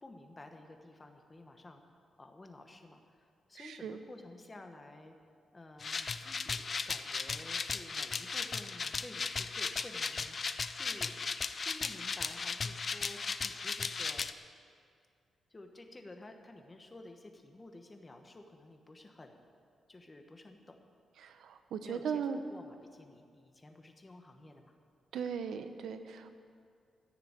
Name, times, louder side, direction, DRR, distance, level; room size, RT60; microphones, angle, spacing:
voice 1, 0.0-1.8 2.2-5.1 5.5-10.4 10.7-11.3 11.6-14.3 15.5-19.4 19.9-20.8 21.8-22.2 22.5-24.7, left 2 dB, 20° left, 5 dB, 1.1 m, -52 dB
voice 2, 3.6-4.0 21.2-22.4 25.1-26.3, right 7 dB, 90° right, 9 dB, 0.9 m, -38 dB
sound 1, 5.8-14.3, left 5 dB, 35° left, 0.4 m, -36 dB
14.0 x 6.9 x 8.9 m, 2.3 s
wide cardioid pair, 140°, 0 cm